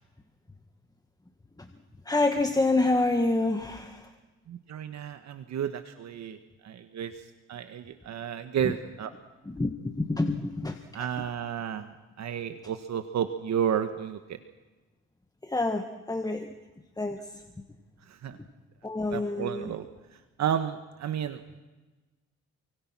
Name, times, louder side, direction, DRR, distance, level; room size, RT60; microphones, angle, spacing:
voice 1, 2.0-4.0 9.4-10.8 15.5-16.5 17.0-17.2 18.8-19.7, left 2 dB, 10° left, 6 dB, 1.7 m, -27 dB
voice 2, 4.5-6.4 6.6-7.1 7.5-9.1 10.9-11.9 12.2-14.4 18.1-18.4 19.1-19.9 20.4-21.4, right 9 dB, 65° right, 9 dB, 1.4 m, -32 dB
28.5 x 24.5 x 6.1 m, 1.2 s
cardioid pair, 90°, 30 cm